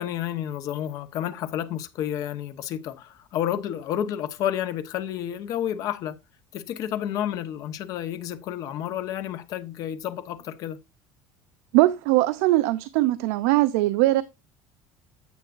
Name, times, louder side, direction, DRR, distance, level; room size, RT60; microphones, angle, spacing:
voice 1, 0.0-6.2 6.5-10.8, left 10 dB, 45° left, 1.0 m, -30 dB
voice 2, 11.7-14.2, right 17 dB, 90° right, 0.6 m, -21 dB
9.4 x 8.0 x 2.5 m
cardioid pair, 170°, 8 cm